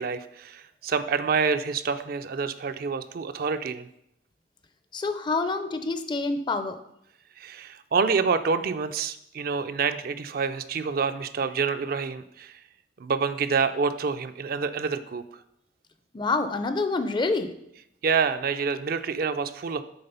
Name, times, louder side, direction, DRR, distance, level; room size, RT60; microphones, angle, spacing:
voice 1, 0.0-3.9 7.4-12.6 13.0-15.2 18.0-19.8, right 5 dB, 55° right, 10 dB, 0.4 m, -27 dB
voice 2, 4.9-6.8 16.1-17.5, left 3 dB, 25° left, 10 dB, 0.4 m, -27 dB
7.9 x 3.6 x 5.5 m, 0.78 s
head